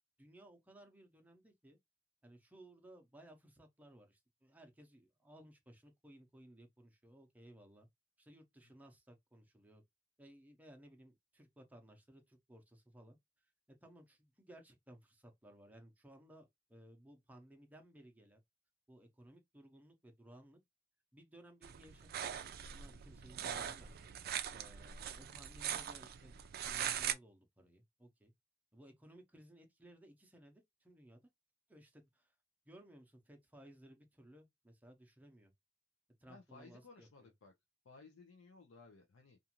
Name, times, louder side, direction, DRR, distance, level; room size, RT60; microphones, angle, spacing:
voice 1, 0.2-1.8 2.2-7.9 8.2-9.8 10.2-13.2 13.8-18.4 18.9-20.6 21.1-24.0 24.5-28.3 28.7-31.2 31.7-32.3 32.7-35.5 36.2-37.3, right 1 dB, 10° right, 0.6 m, -60 dB
sound 1, 21.6-27.1, right 9 dB, 50° right, 0.3 m, -42 dB
voice 2, 36.3-37.5 37.8-39.4, left 4 dB, 85° left, 0.5 m, -59 dB
2.5 x 2.4 x 2.8 m
head